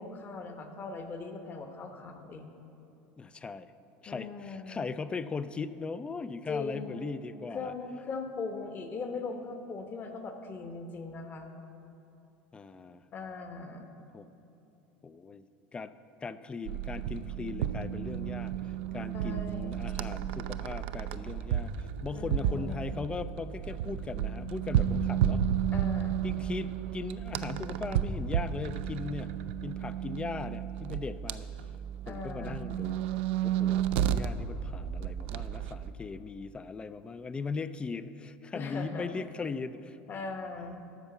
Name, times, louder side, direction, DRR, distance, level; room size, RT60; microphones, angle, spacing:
voice 1, 0.0-2.5 4.1-4.9 6.5-7.1 7.5-11.5 13.1-13.9 19.1-19.9 22.1-23.1 25.7-26.2 32.1-32.6 38.5-39.2 40.1-40.9, left 4 dB, 35° left, 6 dB, 1.1 m, -40 dB
voice 2, 3.2-3.7 4.0-7.7 12.5-13.0 14.1-14.3 15.0-15.4 15.7-15.9 16.2-25.5 26.2-29.4 29.6-31.5 32.1-33.0 33.4-40.0, left 4 dB, 15° left, 14 dB, 0.3 m, -39 dB
sound 1, 16.6-35.9, right 9 dB, 80° right, 0.4 m, -32 dB
12.5 x 4.6 x 7.0 m, 2.8 s
supercardioid pair, 110°, 6 cm